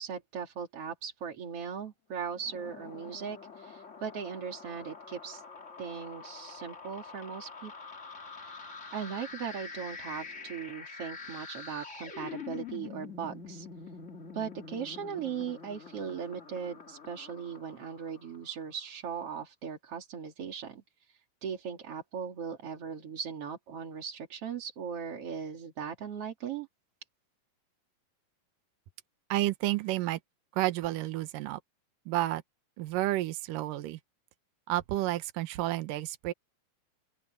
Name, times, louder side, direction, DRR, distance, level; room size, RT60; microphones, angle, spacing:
voice 1, 0.0-5.4 5.8-7.7 8.4-13.7 14.3-20.8 21.1-26.7, right 7 dB, 45° right, 3.0 m, -39 dB
sound 1, 2.3-18.6, left 5 dB, 30° left, 1.4 m, -46 dB
voice 2, 29.3-30.2 30.5-31.6 32.1-32.4 32.8-34.0 34.7-36.3, right 16 dB, 70° right, 2.6 m, -30 dB
open air
omnidirectional pair, 4.2 m